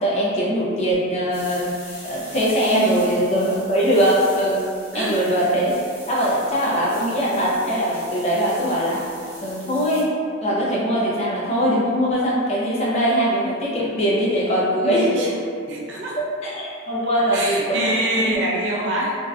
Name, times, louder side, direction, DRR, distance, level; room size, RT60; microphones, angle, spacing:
voice 1, 0.0-1.7 2.0-4.6 4.9-5.7 6.1-9.0 9.4-10.1 10.4-15.3 16.2-17.9 18.2-18.4, equal, 35° left, -6 dB, 0.5 m, -21 dB
sound 1, 1.3-10.0, equal, 10° right, 0.6 m, -42 dB
voice 2, 2.7-3.0 4.9-5.1 14.8-15.3 15.7-16.2 17.3-19.2, right 1 dB, 65° right, -3 dB, 0.4 m, -25 dB
2.5 x 2.1 x 2.3 m, 2.3 s
head